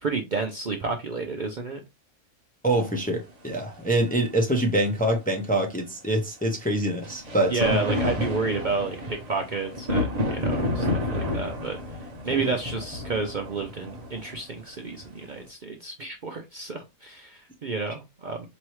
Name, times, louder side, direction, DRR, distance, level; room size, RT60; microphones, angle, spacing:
voice 1, 0.0-1.8 7.5-11.8 12.2-18.5, right 4 dB, 60° right, 0.4 m, -30 dB
voice 2, 2.6-7.8 12.3-12.5, right 1 dB, 10° left, 0.5 m, -25 dB
sound 1, 3.1-3.2 7.0-15.4, left 1 dB, 35° right, 0.8 m, -30 dB
4.6 x 3.1 x 3.0 m
omnidirectional pair, 1.5 m